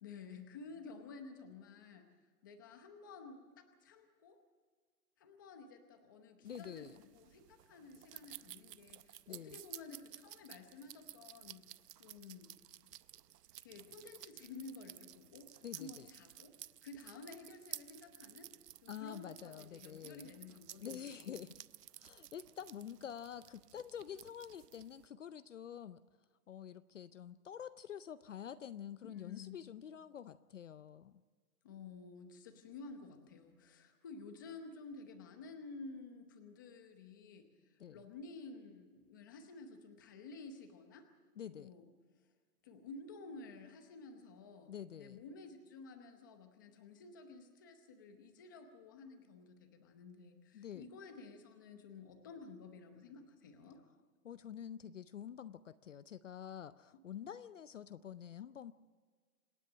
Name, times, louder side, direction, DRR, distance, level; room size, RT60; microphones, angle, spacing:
voice 1, 0.0-2.1 2.4-4.4 5.2-11.7 12.0-12.5 13.6-16.5 16.8-18.5 18.8-21.4 29.0-29.6 31.6-41.1 41.5-41.9 42.6-53.8, left 4 dB, 15° left, 6 dB, 0.8 m, -52 dB
voice 2, 6.4-7.0 9.3-9.6 15.6-16.1 18.9-20.3 20.8-21.6 22.0-26.0 26.5-31.2 37.8-38.0 41.4-41.7 44.7-45.2 50.5-50.9 54.2-58.7, left 9 dB, 50° left, 14 dB, 0.6 m, -48 dB
sound 1, 6.5-25.1, right 11 dB, 85° right, 0.8 m, -54 dB
26.5 x 9.9 x 9.8 m, 1.5 s
hypercardioid pair, 175°, 47 cm